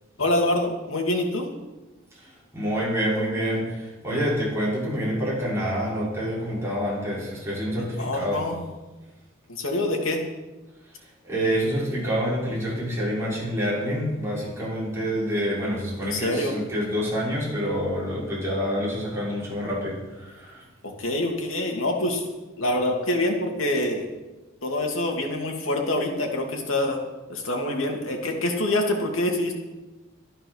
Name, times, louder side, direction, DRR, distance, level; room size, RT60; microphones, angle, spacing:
voice 1, 0.2-1.5 8.0-8.6 9.5-10.2 16.0-16.5 20.8-22.2 22.6-24.1 24.6-27.0 27.3-29.5, left 1 dB, 75° left, 2 dB, 2.5 m, -25 dB
voice 2, 2.1-8.5 11.2-20.6, equal, 15° right, -7 dB, 5.8 m, -27 dB
13.0 x 11.0 x 6.4 m, 1.1 s
head